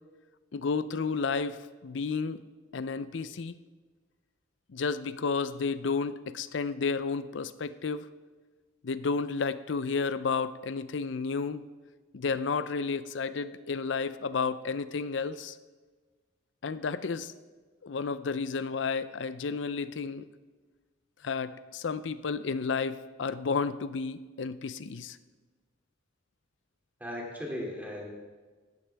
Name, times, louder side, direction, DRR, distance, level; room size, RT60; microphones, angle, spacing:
voice 1, 0.5-2.4 2.7-3.6 4.7-8.1 8.8-11.6 12.1-15.6 16.6-17.3 17.8-20.3 21.2-25.2, left 4 dB, 65° left, 14 dB, 0.5 m, -32 dB
voice 2, 27.0-28.1, left 1 dB, 10° right, -2 dB, 2.6 m, -37 dB
16.5 x 12.5 x 3.4 m, 1.4 s
head